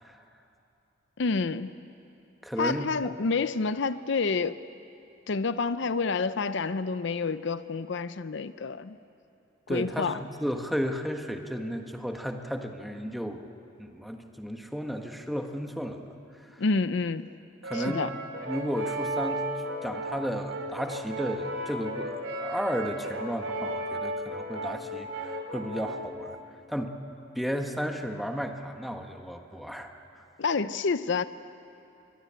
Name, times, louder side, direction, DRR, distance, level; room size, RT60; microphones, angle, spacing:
voice 1, 1.2-1.7 2.6-4.6 5.3-9.0 9.7-10.2 16.6-17.3 17.7-18.1 30.4-31.2, left 4 dB, 60° left, 13 dB, 0.6 m, -28 dB
voice 2, 2.4-3.1 9.7-13.4 13.8-16.1 16.5-16.6 17.6-18.1 18.4-19.5 19.8-26.4 26.7-27.0 27.3-30.2, equal, ahead, 4 dB, 1.4 m, -33 dB
Brass instrument, 17.6-26.2, right 1 dB, 75° right, 3.5 m, -35 dB
24.5 x 22.5 x 8.8 m, 2.8 s
head